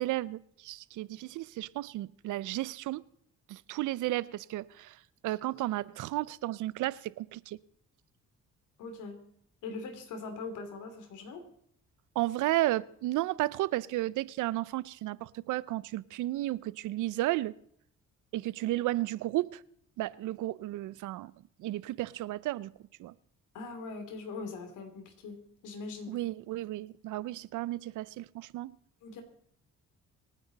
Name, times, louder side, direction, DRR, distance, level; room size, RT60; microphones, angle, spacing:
voice 1, 0.0-3.0 3.5-5.0 5.2-7.6 12.2-17.5 18.3-19.6 20.0-21.3 21.6-22.7 23.0-23.1 26.1-28.7, right 16 dB, 85° right, 0.6 m, -33 dB
voice 2, 8.8-9.2 9.6-11.5 23.5-26.2 29.0-29.2, left 4 dB, 85° left, 3.0 m, -41 dB
26.5 x 9.2 x 4.1 m
cardioid pair, 90°, 30 cm